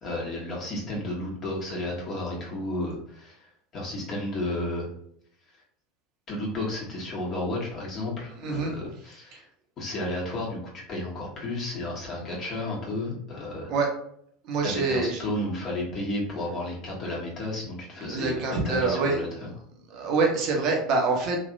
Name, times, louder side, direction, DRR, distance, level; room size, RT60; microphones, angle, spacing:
voice 1, 0.0-3.4 3.7-4.9 6.3-9.4 9.8-13.7 14.6-19.5, left 1 dB, 40° left, -3 dB, 1.3 m, -32 dB
voice 2, 8.4-8.7 13.7-13.9 14.5-15.2 18.1-19.2 19.9-21.4, right 3 dB, 50° right, 1 dB, 0.9 m, -25 dB
3.1 x 2.8 x 2.5 m, 0.66 s
hypercardioid pair, 75°, 0 cm